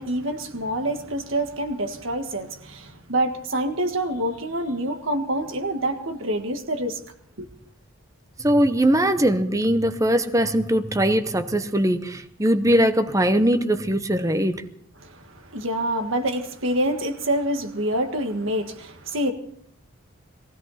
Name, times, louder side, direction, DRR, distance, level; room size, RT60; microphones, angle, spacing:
voice 1, 0.0-7.0 7.4-7.5 15.0-19.3, right 1 dB, 65° right, 1.7 m, -26 dB
voice 2, 8.4-14.6, right 1 dB, 15° right, 0.8 m, -21 dB
20.0 x 16.5 x 4.2 m
head